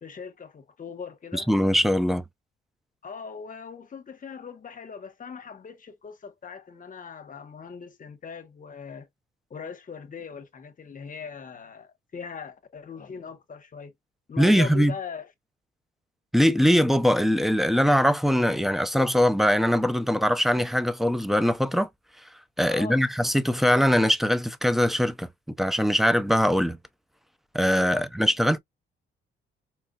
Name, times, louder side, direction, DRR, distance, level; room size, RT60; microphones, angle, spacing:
voice 1, 0.0-1.5 3.0-9.1 9.5-13.9 14.3-15.3 22.7-23.1 27.9-28.1, left 6 dB, 40° left, 1.0 m, -40 dB
voice 2, 1.3-2.2 14.4-14.9 16.3-21.9 22.6-25.3 25.6-26.8 27.5-28.6, equal, ahead, 0.5 m, -22 dB
4.5 x 2.5 x 2.3 m
cardioid pair, 90°, 20 cm